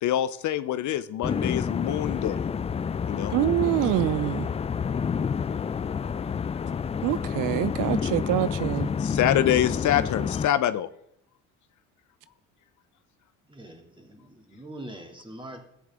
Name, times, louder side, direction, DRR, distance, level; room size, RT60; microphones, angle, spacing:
voice 1, 0.0-2.4 3.0-3.3 9.0-10.9, left 11 dB, 60° left, 0.6 m, -25 dB
sound 1, 1.2-10.5, left 6 dB, 20° left, 0.3 m, -29 dB
voice 2, 3.3-4.5 7.0-8.9, right 15 dB, 65° right, 0.5 m, -25 dB
voice 3, 13.5-15.6, right 1 dB, 15° right, 2.5 m, -43 dB
14.0 x 8.7 x 3.7 m
supercardioid pair, 70°, 34 cm